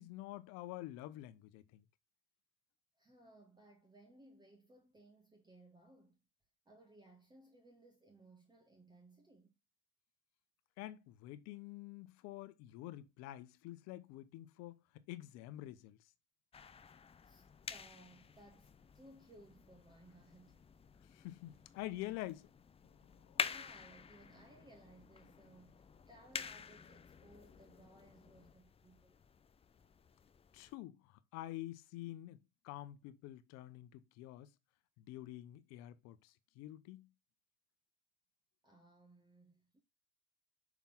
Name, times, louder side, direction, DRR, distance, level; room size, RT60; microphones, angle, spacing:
voice 1, 0.0-1.8 10.8-16.1 21.0-22.5 22.8-23.4 30.5-32.4 32.6-34.5 35.0-37.1, left 15 dB, 60° left, 0.9 m, -48 dB
voice 2, 2.9-6.2 6.6-9.5 17.2-20.6 22.9-23.0 23.4-29.2 29.8-29.9 38.6-39.8, right 1 dB, 15° right, 1.3 m, -62 dB
sound 1, 16.5-30.7, left 6 dB, 20° left, 0.5 m, -48 dB
5.9 x 3.6 x 5.9 m
hypercardioid pair, 90°, 30 cm